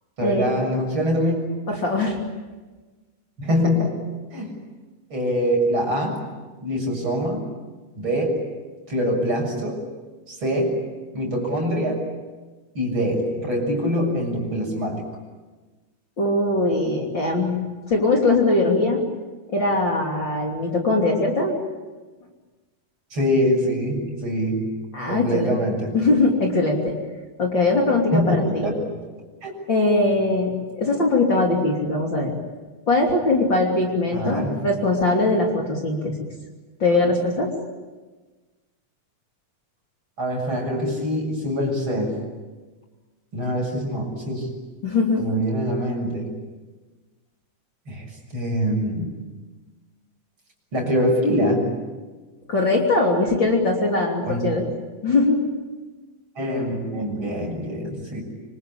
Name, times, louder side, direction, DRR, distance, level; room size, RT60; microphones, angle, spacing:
voice 1, 0.2-1.4 3.4-4.0 4.3-4.5 5.1-6.2 6.6-7.4 8.0-8.4 8.9-9.8 10.3-10.8 11.1-12.0 12.7-15.0 23.1-24.7 25.1-25.9 28.1-29.0 29.4-29.5 34.1-34.6 40.2-42.2 43.3-44.5 45.2-46.3 47.9-48.0 48.3-49.1 50.7-51.7 54.2-54.4 56.4-58.2, equal, 40° right, 1 dB, 7.8 m, -24 dB
voice 2, 1.7-2.2 16.2-17.6 17.9-19.0 19.5-21.5 24.9-25.6 25.9-26.9 27.4-28.7 29.7-32.3 32.9-36.2 36.8-37.5 44.8-45.2 52.5-54.6 55.0-55.4, left 2 dB, 40° left, 0 dB, 3.7 m, -21 dB
26.5 x 25.5 x 8.7 m, 1.3 s
omnidirectional pair, 3.4 m